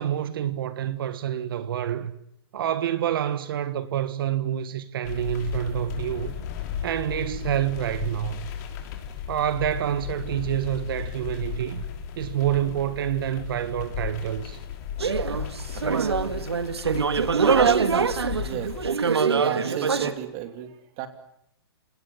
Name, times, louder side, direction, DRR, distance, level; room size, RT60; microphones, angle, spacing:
voice 1, 0.0-2.1 2.5-6.4 6.8-8.5 9.3-11.8 12.2-14.6, right 10 dB, 60° right, 1.6 m, -27 dB
sound 1, 5.0-18.9, left 8 dB, 45° left, 4.2 m, -35 dB
sound 2, 15.0-20.1, right 5 dB, 90° right, 1.9 m, -23 dB
voice 2, 18.4-18.7 19.3-21.1, right 11 dB, 35° right, 3.1 m, -34 dB
29.0 x 18.5 x 8.9 m
hypercardioid pair, 135°, 13 cm